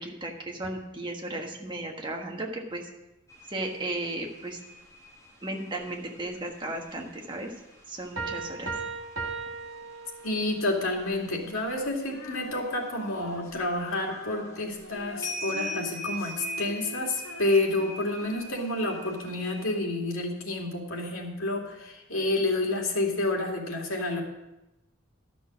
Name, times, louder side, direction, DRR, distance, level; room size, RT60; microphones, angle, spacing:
voice 1, 0.0-2.9 3.5-4.6 5.4-7.5 7.9-8.7, right 1 dB, 25° right, 1 dB, 1.4 m, -35 dB
sound 1, 3.3-9.8 10.2-11.9 12.3-13.6 14.3-14.4 14.7-19.7, left 1 dB, 15° left, 1.3 m, -42 dB
Piano, 8.2-10.6, right 4 dB, 70° right, 1.5 m, -36 dB
voice 2, 10.2-24.2, left 2 dB, 90° left, 0 dB, 2.5 m, -29 dB
Female singing, 12.0-19.4, left 1 dB, 75° left, 1.5 m, -45 dB
12.5 x 6.2 x 6.1 m, 0.93 s
head